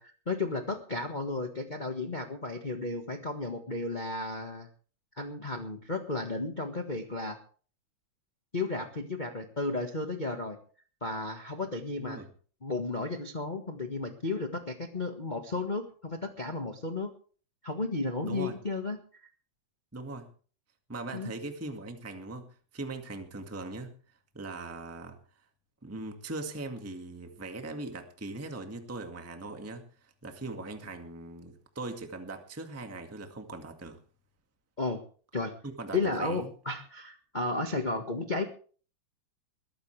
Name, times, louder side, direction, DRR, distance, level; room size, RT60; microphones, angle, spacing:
voice 1, 0.0-4.7 5.2-7.4 8.5-10.6 11.0-12.2 12.6-17.1 17.6-19.0 21.1-21.3 34.8-35.0 35.3-35.5 35.9-38.4, left 3 dB, 25° left, 4 dB, 0.9 m, -33 dB
voice 2, 12.0-12.3 18.2-18.6 19.9-20.3 20.9-23.9 24.3-25.2 25.8-34.0 35.6-36.5, right 2 dB, 5° right, 5 dB, 1.4 m, -40 dB
21.5 x 14.0 x 3.4 m, 0.41 s
omnidirectional pair, 3.4 m